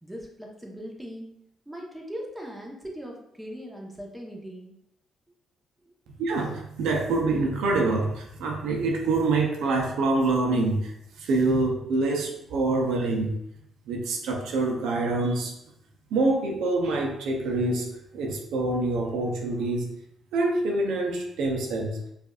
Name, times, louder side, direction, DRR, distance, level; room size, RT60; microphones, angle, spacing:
voice 1, 0.0-1.3 1.7-4.7, equal, 10° right, -1 dB, 1.0 m, -39 dB
voice 2, 6.2-10.9 11.2-13.3 13.9-15.5 16.1-19.9 20.3-22.0, right 2 dB, 85° right, 1 dB, 0.6 m, -26 dB
4.8 x 2.5 x 2.4 m, 0.76 s
cardioid pair, 70°, 0 cm